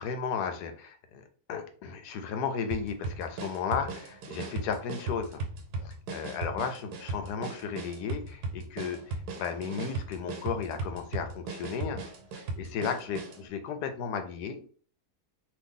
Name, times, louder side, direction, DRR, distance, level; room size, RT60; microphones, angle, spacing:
voice 1, 0.0-5.4 5.8-12.0 12.3-14.6, left 6 dB, 90° left, 7 dB, 1.2 m, -34 dB
sound 1, 2.7-13.4, right 3 dB, 85° right, 1.2 m, -37 dB
2.9 x 2.6 x 3.6 m, 0.43 s
omnidirectional pair, 1.7 m